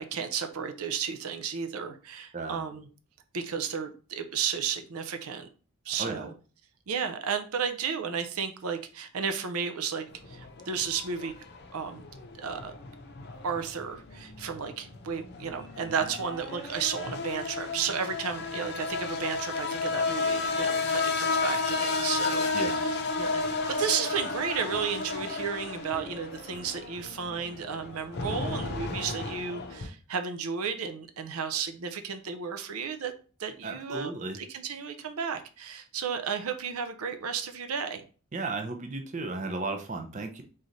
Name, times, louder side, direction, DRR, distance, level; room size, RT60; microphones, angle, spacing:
voice 1, 0.0-2.9 3.3-5.5 5.9-6.3 6.9-11.3 11.7-12.0 12.4-12.7 13.4-23.4 23.7-33.1 33.4-38.0, right 6 dB, 80° right, 7 dB, 0.6 m, -33 dB
sound 1, 10.1-29.9, left 3 dB, 45° left, 0.6 m, -33 dB
voice 2, 22.5-22.8 33.6-34.4 38.3-40.4, right 3 dB, 35° right, 4 dB, 0.5 m, -34 dB
3.8 x 3.2 x 4.0 m, 0.38 s
head